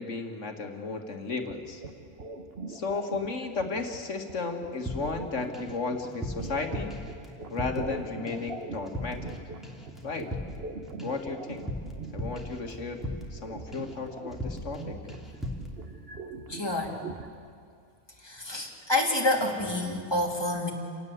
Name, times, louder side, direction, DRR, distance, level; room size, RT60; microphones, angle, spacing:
voice 1, 0.0-1.8 2.7-6.9 7.5-9.3 10.0-10.3 11.0-11.7 12.1-13.0 13.3-15.0, left 4 dB, 55° left, 4 dB, 2.2 m, -34 dB
sound 1, 1.2-17.3, right 3 dB, 45° right, 1.4 m, -43 dB
sound 2, 4.9-5.8 6.0-8.0 8.3-8.6 8.9-9.4 9.6-13.4 13.7-14.0 14.3-14.8 15.1-15.7, equal, ahead, 2.9 m, -38 dB
voice 2, 16.5-17.0 18.2-20.7, left 2 dB, 15° left, -1 dB, 3.0 m, -28 dB
28.5 x 18.0 x 8.1 m, 2.3 s
omnidirectional pair, 1.6 m